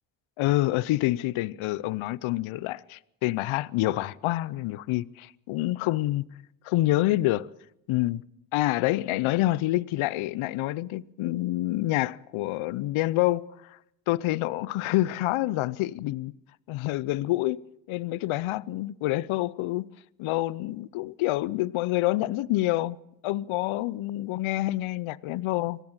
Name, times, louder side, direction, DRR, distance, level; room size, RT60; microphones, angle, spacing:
voice 1, 0.4-6.2 6.6-7.5 7.9-8.2 8.5-13.4 14.1-16.3 16.7-17.6 17.9-19.9 20.2-23.0 23.2-25.8, left 17 dB, 75° left, 0.7 m, -27 dB
24.0 x 17.5 x 7.4 m
supercardioid pair, 50°, 49 cm